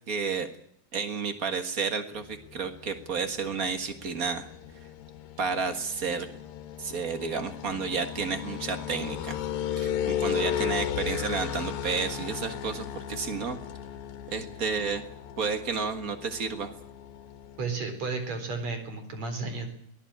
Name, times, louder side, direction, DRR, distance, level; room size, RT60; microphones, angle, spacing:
voice 1, 0.1-0.5 0.9-4.5 5.4-6.3 6.8-9.4 9.8-13.6 14.3-15.1 15.4-16.7, right 5 dB, 70° right, 8 dB, 0.8 m, -31 dB
sound 1, 2.1-17.7, left 10 dB, 75° left, 3.1 m, -36 dB
voice 2, 17.6-19.7, right 4 dB, 45° right, 7 dB, 5.1 m, -33 dB
23.5 x 18.0 x 8.7 m, 0.66 s
omnidirectional pair, 4.2 m